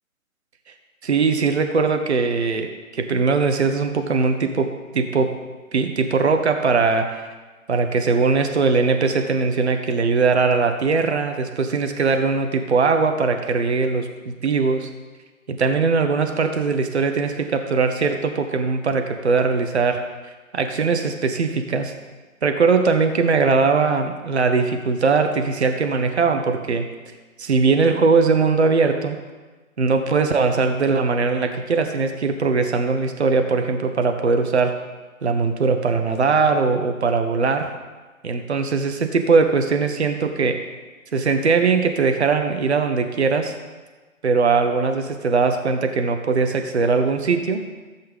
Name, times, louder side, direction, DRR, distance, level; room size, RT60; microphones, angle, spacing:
voice 1, 1.0-5.4 5.7-7.3 7.7-14.9 15.5-20.0 20.5-21.9 22.4-26.9 27.4-29.2 29.8-34.8 35.2-37.7 38.2-40.6 41.1-43.6 44.2-47.6, right 4 dB, 50° right, 6 dB, 1.0 m, -20 dB
15.5 x 8.0 x 3.5 m, 1.3 s
figure-of-eight pair, 145°, 42 cm